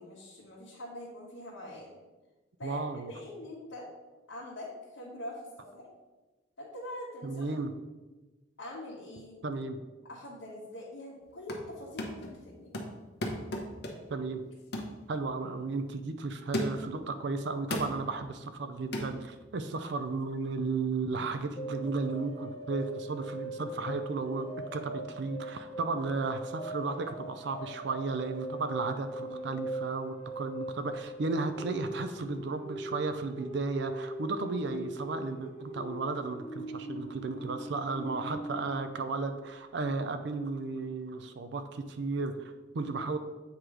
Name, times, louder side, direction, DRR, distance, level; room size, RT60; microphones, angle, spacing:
voice 1, 0.0-1.9 2.6-3.9 4.3-5.9 6.6-7.5 8.6-9.4 10.1-12.7 29.3-29.6 38.1-38.4, left 1 dB, 75° left, -6 dB, 1.3 m, -44 dB
voice 2, 2.6-3.1 7.2-7.7 9.4-9.8 14.1-14.4 15.1-43.2, right 3 dB, 60° right, 9 dB, 0.5 m, -34 dB
sound 1, 11.2-11.7 12.0-12.4 12.7-14.2 14.7-15.0 15.5-15.6 16.5-17.0 17.7-18.0 18.9-19.1, left 1 dB, 55° left, 0.9 m, -35 dB
sound 2, 21.6-39.0, right 1 dB, 25° left, 1.0 m, -41 dB
8.0 x 3.1 x 4.9 m, 1.2 s
head